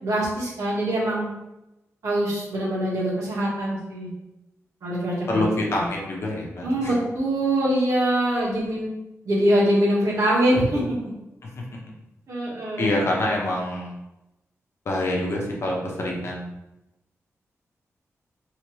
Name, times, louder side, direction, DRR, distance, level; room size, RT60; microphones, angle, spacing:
voice 1, 0.0-1.3 2.0-4.1 4.8-5.4 5.7-5.9 6.6-8.8 9.2-10.8 12.3-12.9, right 1 dB, 75° right, -6 dB, 1.4 m, -23 dB
voice 2, 5.3-6.9 12.8-13.9 14.9-16.4, left 1 dB, 55° left, -2 dB, 0.8 m, -26 dB
3.1 x 3.1 x 3.0 m, 0.93 s
wide cardioid pair, 140°, 5 cm